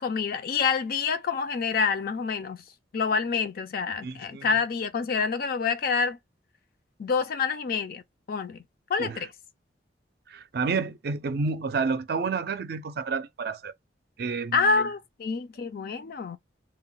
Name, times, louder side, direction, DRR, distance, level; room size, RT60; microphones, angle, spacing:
voice 1, 0.0-2.6 2.9-6.2 7.0-8.0 8.3-8.6 8.9-9.3 14.5-16.4, left 5 dB, 55° left, 0.4 m, -27 dB
voice 2, 4.0-4.5 9.0-9.2 10.3-13.7 14.2-14.9, right 4 dB, 60° right, 0.4 m, -30 dB
2.2 x 2.1 x 3.8 m
head